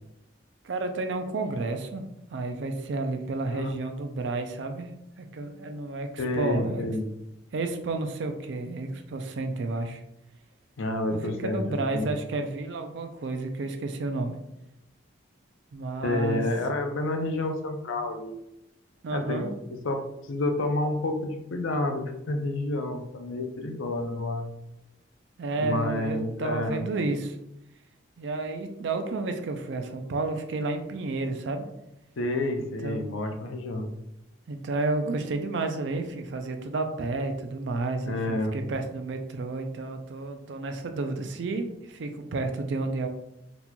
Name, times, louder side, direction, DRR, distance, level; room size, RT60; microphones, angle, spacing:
voice 1, 0.6-2.0 2.3-4.9 5.2-6.8 7.5-10.0 11.1-14.3 15.7-16.4 19.0-19.6 25.4-27.4 28.2-31.7 32.8-33.1 34.5-43.1, right 3 dB, 65° right, 6 dB, 0.4 m, -31 dB
voice 2, 6.2-7.1 10.8-12.1 16.0-18.4 19.1-24.5 25.6-26.8 32.2-33.9 38.1-38.6, left 2 dB, 85° left, 5 dB, 0.5 m, -29 dB
4.1 x 2.9 x 2.2 m, 0.85 s
head